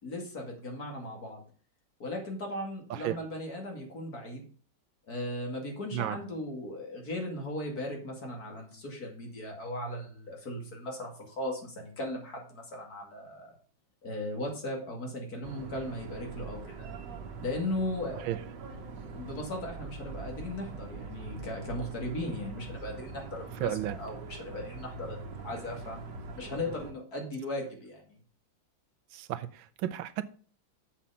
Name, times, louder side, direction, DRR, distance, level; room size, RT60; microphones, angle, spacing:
voice 1, 0.0-1.4 2.0-4.5 5.1-13.5 14.0-16.9 17.4-18.4 18.9-28.2, left 1 dB, 50° left, 2.6 m, -37 dB
sound 1, 15.4-26.9, right 4 dB, 70° right, 1.7 m, -43 dB
voice 2, 23.6-24.0 29.1-30.2, right 12 dB, 90° right, 1.4 m, -33 dB
7.3 x 5.8 x 5.6 m
omnidirectional pair, 2.1 m